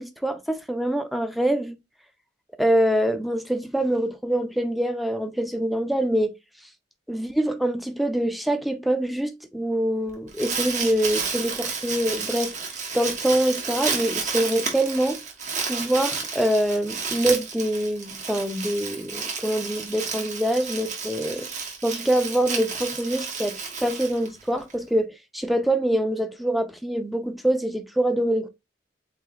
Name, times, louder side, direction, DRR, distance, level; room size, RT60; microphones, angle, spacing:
voice 1, 0.0-1.7 2.6-6.3 7.1-12.5 12.9-15.2 15.7-21.5 21.8-28.5, right 1 dB, ahead, 0.5 m, -25 dB
Crumpling crinkling, 10.1-24.7, right 5 dB, 40° right, 1.2 m, -31 dB
7.6 x 2.8 x 2.5 m
head